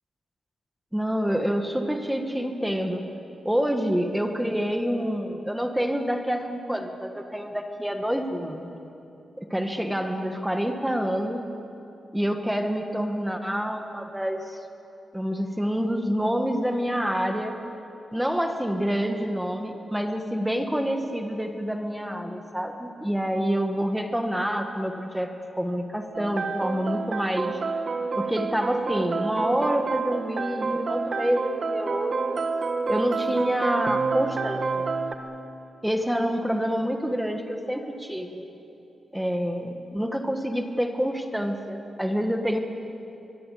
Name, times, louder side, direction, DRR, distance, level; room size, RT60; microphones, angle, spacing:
voice 1, 0.9-3.1 3.4-8.7 9.4-11.4 12.1-14.6 15.1-17.6 18.1-27.6 28.2-32.1 32.9-34.8 35.8-38.5 39.1-42.6, equal, 5° right, 5 dB, 1.5 m, -27 dB
sound 1, 26.1-35.2, right 4 dB, 50° right, 1.4 m, -28 dB
23.5 x 22.5 x 8.5 m, 2.8 s
wide cardioid pair, 140°, 0 cm